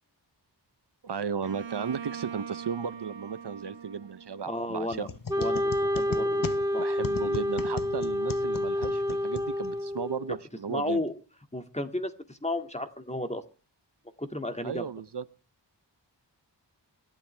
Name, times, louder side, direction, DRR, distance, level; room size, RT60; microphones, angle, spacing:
voice 1, 1.0-5.1 6.8-11.0 14.6-15.2, right 6 dB, 70° right, 15 dB, 0.8 m, -35 dB
Bowed string instrument, 1.4-5.2, right 8 dB, 90° right, 1.4 m, -42 dB
voice 2, 4.4-5.1 5.4-7.1 10.7-11.1 11.5-13.4 14.2-14.8, left 1 dB, 15° left, 7 dB, 2.0 m, -33 dB
sound 1, 4.9-10.0, left 6 dB, 50° left, 0.8 m, -38 dB
Wind instrument woodwind instrument, 5.3-10.4, equal, 10° right, 1.8 m, -29 dB
26.0 x 12.0 x 3.3 m, 0.36 s
wide cardioid pair, 65°, 43 cm